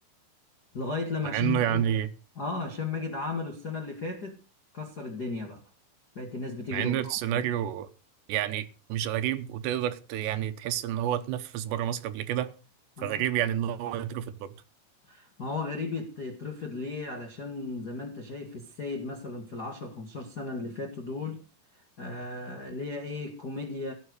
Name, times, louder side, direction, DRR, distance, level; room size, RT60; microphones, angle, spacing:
voice 1, 0.7-1.8 2.3-4.4 4.7-5.6 6.1-7.4 13.0-13.2 15.0-21.4 21.7-23.9, left 3 dB, 55° left, 1.1 m, -35 dB
voice 2, 1.3-2.1 6.7-7.9 8.3-12.5 13.0-14.5, right 11 dB, 75° right, 3.1 m, -29 dB
17.0 x 8.1 x 6.4 m
omnidirectional pair, 5.3 m